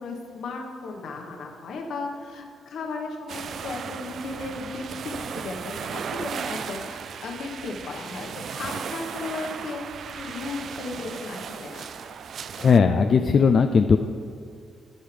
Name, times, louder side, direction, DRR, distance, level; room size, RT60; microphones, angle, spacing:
voice 1, 0.0-11.9, left 3 dB, 70° left, 1 dB, 1.3 m, -35 dB
sound 1, 3.3-12.8, right 7 dB, 60° right, 0.3 m, -36 dB
voice 2, 12.6-14.0, left 5 dB, 50° left, 6 dB, 0.4 m, -18 dB
14.0 x 5.6 x 3.3 m, 2.3 s
cardioid pair, 90°, 0 cm